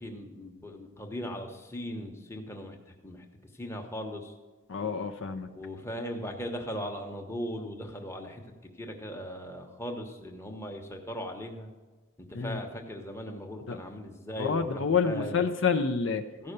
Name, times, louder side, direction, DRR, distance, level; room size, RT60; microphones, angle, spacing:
voice 1, 0.0-2.8 3.0-3.2 3.5-4.3 5.5-8.4 8.8-11.7 12.3-15.5 16.4-16.5, equal, 10° left, 3 dB, 1.0 m, -38 dB
voice 2, 4.7-5.5 12.3-12.6 13.7-13.8 14.4-16.2, left 5 dB, 60° left, 7 dB, 0.5 m, -28 dB
14.5 x 5.4 x 6.7 m, 1.3 s
head